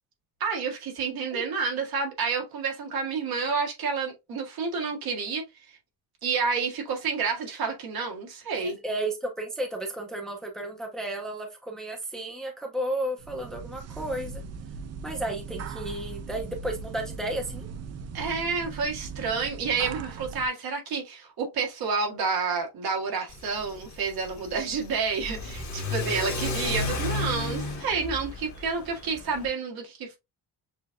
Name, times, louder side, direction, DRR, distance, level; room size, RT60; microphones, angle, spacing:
voice 1, 0.4-5.4 6.2-8.8 18.1-30.2, right 5 dB, 65° right, 1.7 m, -29 dB
voice 2, 8.5-14.4 15.0-17.7, right 1 dB, ahead, 0.6 m, -33 dB
sound 1, 13.2-20.5, right 5 dB, 40° right, 0.4 m, -39 dB
Car / Accelerating revving vroom, 23.3-29.5, left 2 dB, 45° left, 1.3 m, -33 dB
6.7 x 2.6 x 2.2 m
cardioid pair, 170°, 39 cm